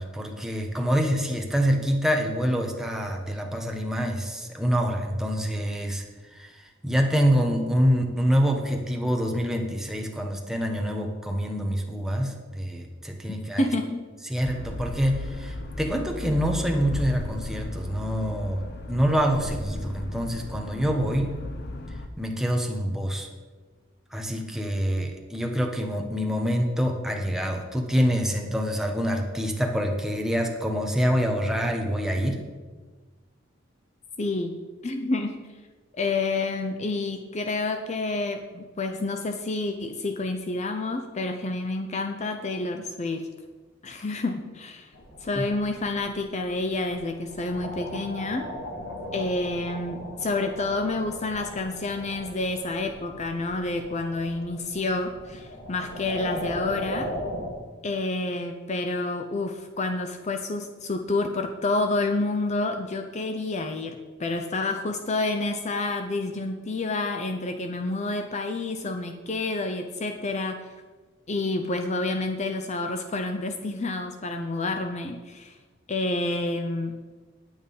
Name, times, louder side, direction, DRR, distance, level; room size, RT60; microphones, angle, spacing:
voice 1, 0.0-6.1 6.3-13.7 14.3-21.3 22.2-23.3 24.1-32.4 45.3-45.5, equal, ahead, 2 dB, 1.2 m, -26 dB
voice 2, 13.6-14.1 34.2-35.5 36.0-43.3 43.8-44.9 45.2-48.5 49.1-57.1 57.8-70.7 71.3-75.6 75.9-77.0, left 2 dB, 35° left, 6 dB, 0.6 m, -29 dB
sound 1, 14.4-22.1, left 2 dB, 55° left, 0.9 m, -35 dB
sound 2, 44.9-57.5, equal, 80° left, 2.2 m, -38 dB
9.4 x 8.8 x 5.4 m, 1.3 s
head